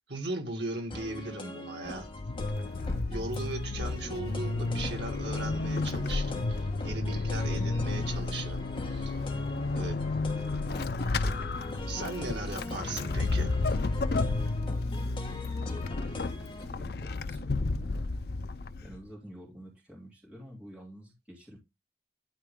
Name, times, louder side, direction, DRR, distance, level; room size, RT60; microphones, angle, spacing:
voice 1, 0.1-2.1 3.0-9.2 9.7-10.0 11.9-13.5, right 2 dB, 85° right, 2.2 m, -38 dB
sound 1, 0.9-16.6, left 1 dB, 30° left, 1.9 m, -42 dB
Vehicle / Accelerating revving vroom / Squeak, 1.9-19.1, left 3 dB, 65° left, 0.5 m, -32 dB
voice 2, 16.6-18.1 18.8-21.6, equal, 5° right, 2.9 m, -49 dB
12.0 x 4.4 x 3.7 m
head